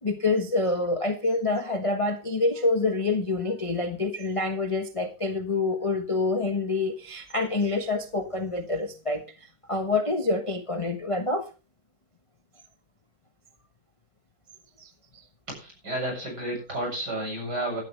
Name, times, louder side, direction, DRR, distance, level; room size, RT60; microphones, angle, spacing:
voice 1, 0.0-11.5 14.8-15.2, left 3 dB, 20° left, 6 dB, 0.9 m, -27 dB
voice 2, 15.5-17.8, right 1 dB, 50° right, 1 dB, 7.8 m, -31 dB
16.5 x 12.0 x 3.3 m, 0.33 s
omnidirectional pair, 2.2 m